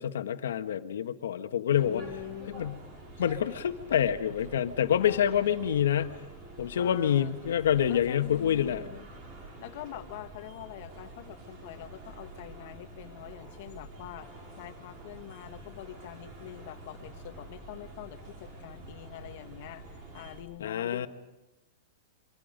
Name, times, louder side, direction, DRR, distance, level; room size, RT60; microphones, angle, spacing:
voice 1, 0.0-2.0 2.5-2.8 3.2-6.1 6.6-8.8 20.6-21.1, left 9 dB, 85° left, 8 dB, 1.5 m, -27 dB
sound 1, 1.7-20.4, right 2 dB, 25° right, 4.8 m, -47 dB
voice 2, 1.9-2.7 5.0-5.5 6.8-7.4 7.9-9.1 9.6-21.1, left 13 dB, 40° left, 8 dB, 1.5 m, -45 dB
25.5 x 23.5 x 5.3 m, 1.0 s
supercardioid pair, 180°, 0 cm